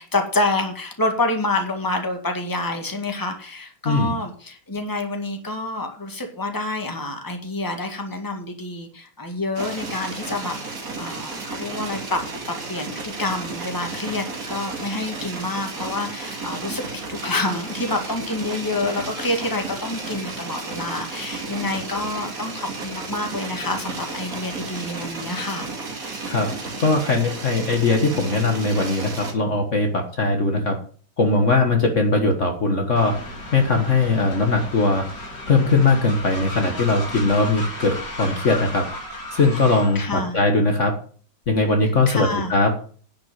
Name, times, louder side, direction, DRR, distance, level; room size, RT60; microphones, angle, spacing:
voice 1, 0.0-10.5 11.0-12.2 12.7-25.7 39.7-40.4 41.8-42.5, left 2 dB, 10° left, 4 dB, 1.9 m, -27 dB
sound 1, 9.5-29.3, right 3 dB, 55° right, 2.7 m, -33 dB
voice 2, 26.8-30.8 31.2-33.1 33.5-35.0 35.5-38.8 39.3-40.9 41.5-42.7, left 3 dB, 45° left, 4 dB, 1.7 m, -20 dB
Train, 33.0-40.0, left 1 dB, 85° left, 4.2 m, -34 dB
10.5 x 6.0 x 7.5 m, 0.43 s
omnidirectional pair, 1.8 m